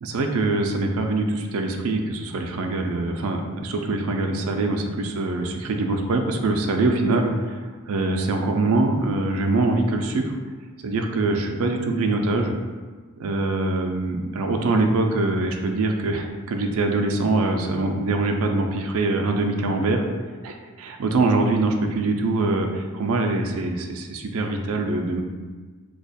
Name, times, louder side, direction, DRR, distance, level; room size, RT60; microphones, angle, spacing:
voice 1, 0.0-10.3 10.8-12.5 13.2-20.0 20.4-25.2, right 2 dB, 70° right, 3 dB, 0.4 m, -23 dB
2.8 x 2.3 x 4.1 m, 1.4 s
head